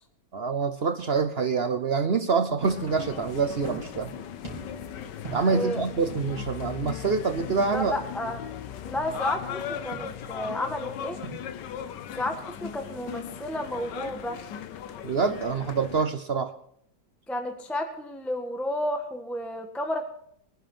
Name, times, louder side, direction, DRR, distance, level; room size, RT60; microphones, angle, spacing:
voice 1, 0.3-4.1 5.3-8.0 15.0-16.5, right 5 dB, 60° right, 9 dB, 0.6 m, -26 dB
sound 1, 2.6-16.0, left 9 dB, 70° left, 1.4 m, -38 dB
sound 2, 2.6-11.4, right 4 dB, 20° right, 4.2 m, -46 dB
voice 2, 5.5-5.8 7.5-8.4 8.8-11.2 12.2-14.4 17.3-20.0, left 1 dB, ahead, 4 dB, 1.2 m, -32 dB
23.0 x 10.5 x 4.4 m, 0.66 s
omnidirectional pair, 2.1 m